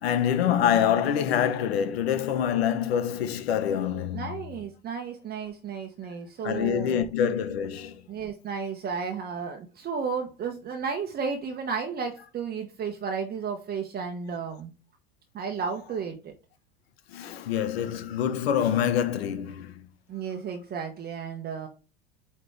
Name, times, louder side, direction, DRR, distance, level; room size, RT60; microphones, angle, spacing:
voice 1, 0.0-4.4 6.4-8.0 17.1-19.9, left 9 dB, 75° left, 1.0 m, -26 dB
voice 2, 4.1-7.1 8.1-14.7 15.3-16.3 20.1-21.7, right 6 dB, 30° right, 1.1 m, -33 dB
8.9 x 3.2 x 3.3 m
hypercardioid pair, 95°, 31 cm